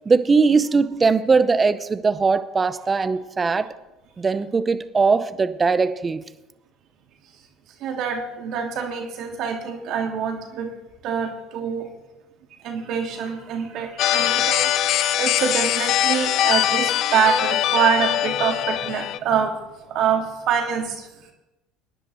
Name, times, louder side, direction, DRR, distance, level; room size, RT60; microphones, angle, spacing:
voice 1, 0.1-3.7 4.2-6.2, right 4 dB, 25° right, 0.7 m, -20 dB
voice 2, 7.8-10.7 11.0-11.9 12.6-19.6 19.9-21.1, right 7 dB, 60° right, 2.0 m, -25 dB
sound 1, 14.0-19.2, left 12 dB, 60° left, 0.5 m, -22 dB
20.5 x 10.5 x 3.1 m
hypercardioid pair, 75°, 0 cm